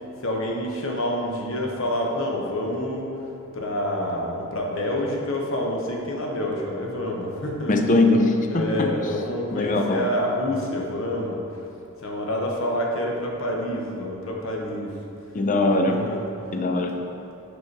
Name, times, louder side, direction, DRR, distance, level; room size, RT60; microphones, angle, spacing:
voice 1, 0.2-3.1 3.5-7.7 8.5-11.4 12.0-14.9 15.9-16.2, left 1 dB, 60° left, -1 dB, 0.9 m, -27 dB
voice 2, 7.7-8.9 9.5-10.1 15.3-16.0 16.5-17.0, left 2 dB, 35° left, 4 dB, 0.5 m, -21 dB
5.0 x 4.8 x 4.6 m, 2.7 s
head